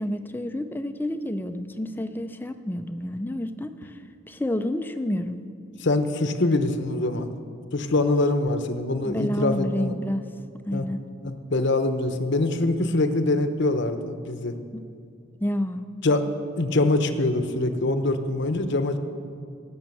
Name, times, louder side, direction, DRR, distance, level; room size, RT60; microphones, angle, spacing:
voice 1, 0.0-4.0 4.3-5.4 9.0-10.2 10.7-11.0 14.7-14.9 15.4-15.9, left 1 dB, 10° left, 9 dB, 0.4 m, -29 dB
voice 2, 5.8-7.3 7.7-9.9 10.7-10.9 11.2-14.5 16.0-16.3 16.6-19.0, left 2 dB, 55° left, 8 dB, 0.8 m, -24 dB
17.5 x 6.3 x 7.7 m, 2.4 s
head